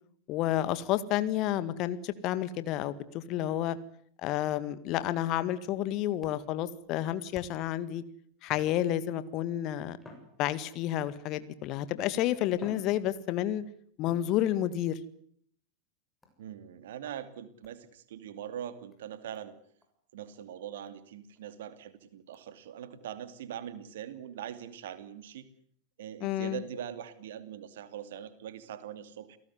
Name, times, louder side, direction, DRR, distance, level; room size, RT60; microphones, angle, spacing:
voice 1, 0.3-3.8 4.2-8.0 8.4-10.0 10.4-13.6 14.0-15.0 26.2-26.6, left 12 dB, 40° left, 14 dB, 1.9 m, -30 dB
sound 1, 6.2-7.8 8.5-9.1 9.9-11.1 11.9-12.0 12.5-13.6 14.0-14.8 16.2-16.5 17.6-17.8 18.4-18.5 18.9-19.0 19.3-19.5 19.8-19.9 20.3-20.4 20.8-20.9 21.4-21.5 22.3-22.5, left 2 dB, 10° left, 7.1 m, -55 dB
voice 2, 16.4-19.6 20.1-25.5 26.0-29.4, right 9 dB, 55° right, 12 dB, 2.6 m, -42 dB
29.0 x 18.0 x 9.7 m, 0.62 s
figure-of-eight pair, 90°, 0 cm